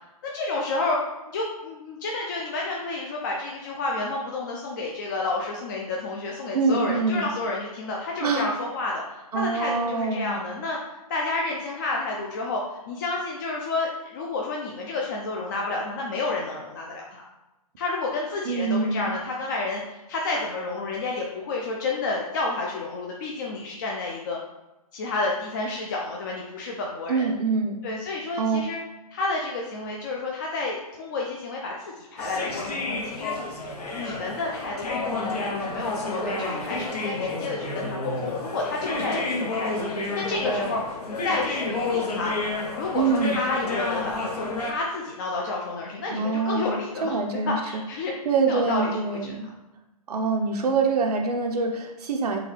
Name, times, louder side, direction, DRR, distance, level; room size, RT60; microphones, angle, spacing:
voice 1, 0.3-1.0 1.3-10.8 11.1-12.6 12.9-17.2 17.8-24.4 24.9-27.3 27.8-28.8 29.1-33.3 33.9-40.8 41.1-47.2 47.5-48.1 48.5-49.3, left 3 dB, 30° left, -1 dB, 0.3 m, -30 dB
voice 2, 6.5-7.3 8.2-8.5 9.3-10.3 18.5-19.1 27.1-27.8 28.4-28.6 42.9-43.4 46.1-47.8 48.2-49.5 50.1-52.4, right 4 dB, 75° right, 2 dB, 0.5 m, -25 dB
sound 1, 32.2-44.7, left 3 dB, 80° left, 0.9 m, -30 dB
3.8 x 2.3 x 3.1 m, 0.99 s
hypercardioid pair, 145°, 20 cm